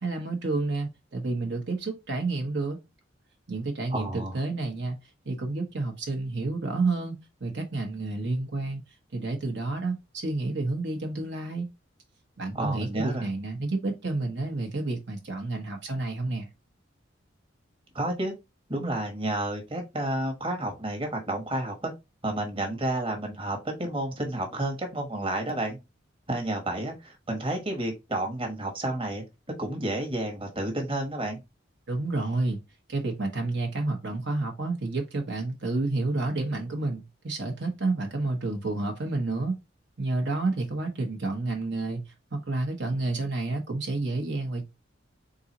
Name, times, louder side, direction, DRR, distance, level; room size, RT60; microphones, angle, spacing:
voice 1, 0.0-2.8 3.5-5.0 5.3-7.1 7.4-8.8 9.1-11.7 12.4-16.5 31.9-32.6 32.9-39.6 40.0-42.0 42.3-44.6, right 2 dB, 65° right, 1.0 m, -30 dB
voice 2, 3.9-4.4 12.5-13.3 17.9-18.3 18.7-21.9 22.2-25.8 26.3-29.2 29.6-31.4, right 1 dB, 30° right, 1.2 m, -30 dB
3.9 x 3.8 x 2.9 m
head